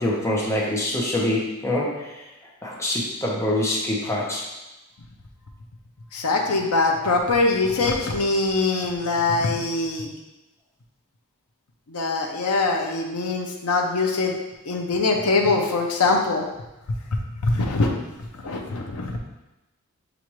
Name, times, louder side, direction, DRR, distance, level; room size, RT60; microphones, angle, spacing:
voice 1, 0.0-2.3 2.6-4.5, left 1 dB, 15° left, -4 dB, 0.9 m, -25 dB
voice 2, 6.1-10.1 11.9-14.4 14.6-16.4 17.4-17.9 18.4-19.2, left 3 dB, 75° left, 1 dB, 0.7 m, -23 dB
6.8 x 2.5 x 3.1 m, 1.0 s
head